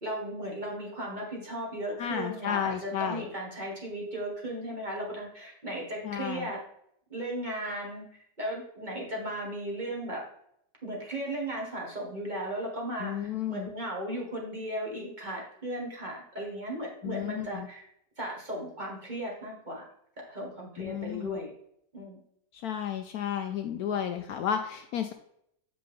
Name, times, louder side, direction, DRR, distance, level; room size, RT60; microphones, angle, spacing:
voice 1, 0.0-6.6 7.1-10.2 10.8-17.9 18.2-19.9 20.3-21.5 21.9-22.2, right 1 dB, 30° right, -2 dB, 1.4 m, -36 dB
voice 2, 2.0-3.3 6.0-6.5 13.0-13.7 17.0-17.7 20.8-21.3 22.5-25.1, left 9 dB, 70° left, 6 dB, 1.0 m, -32 dB
7.7 x 5.1 x 3.5 m, 0.73 s
omnidirectional pair, 1.8 m